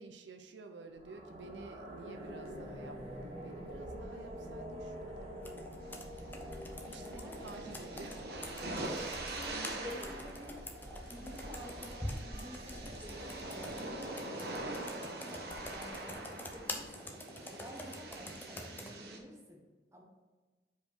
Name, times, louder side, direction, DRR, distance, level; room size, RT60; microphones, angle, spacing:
voice 1, 0.0-9.7, right 3 dB, 90° right, 6 dB, 0.6 m, -52 dB
sound 1, 0.9-15.0, equal, 35° right, 1.3 m, -47 dB
Computer keyboard, 5.4-18.9, left 1 dB, 10° left, 0.5 m, -47 dB
sound 2, 5.8-19.2, right 2 dB, 60° right, 0.9 m, -44 dB
voice 2, 7.0-8.1 8.6-9.0 9.3-10.5 11.1-14.8 15.3-17.1 17.5-19.6 19.9-20.0, left 1 dB, 15° right, -1 dB, 1.1 m, -50 dB
5.0 x 4.5 x 4.9 m, 1.3 s
head